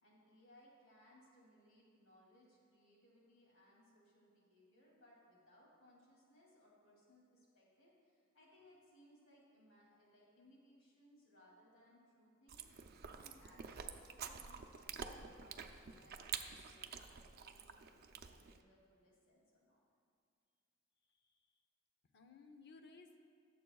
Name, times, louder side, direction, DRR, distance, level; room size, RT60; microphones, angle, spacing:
voice 1, 0.0-19.8, left 1 dB, 85° left, -5 dB, 2.7 m, -67 dB
Chewing mastication, 12.5-18.6, right 7 dB, 50° right, 0.5 m, -49 dB
voice 2, 21.0-21.6 22.1-23.2, left 4 dB, 55° left, 6 dB, 0.8 m, -60 dB
21.5 x 7.6 x 2.3 m, 2.3 s
head